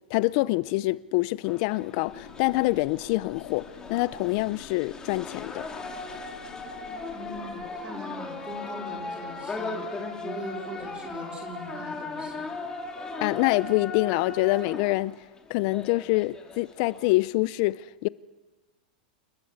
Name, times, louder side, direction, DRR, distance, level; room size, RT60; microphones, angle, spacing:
voice 1, 0.1-5.7 13.2-15.2 15.5-18.1, left 21 dB, 50° left, 0.6 m, -26 dB
sound 1, 1.4-17.1, left 3 dB, 15° left, 2.9 m, -38 dB
sound 2, 2.1-7.7, left 9 dB, 75° left, 4.0 m, -49 dB
voice 2, 7.1-9.8 10.2-12.5, right 1 dB, 20° right, 4.1 m, -41 dB
28.5 x 13.5 x 8.1 m
hypercardioid pair, 130°, 5 cm